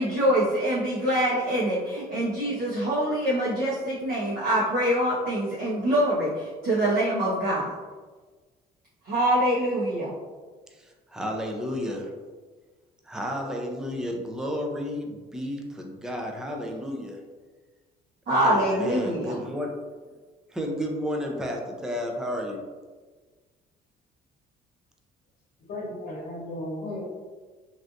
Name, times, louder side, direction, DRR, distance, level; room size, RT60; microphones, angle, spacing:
voice 1, 0.0-7.7 9.0-10.1 18.3-19.4, right 1 dB, 60° right, -9 dB, 1.0 m, -24 dB
voice 2, 11.1-12.1 13.1-17.2 18.4-19.7 20.5-22.6, equal, 5° right, 1 dB, 0.4 m, -32 dB
voice 3, 25.7-27.0, left 1 dB, 70° left, -4 dB, 1.0 m, -35 dB
3.3 x 2.5 x 2.5 m, 1.4 s
cardioid pair, 110°, 17 cm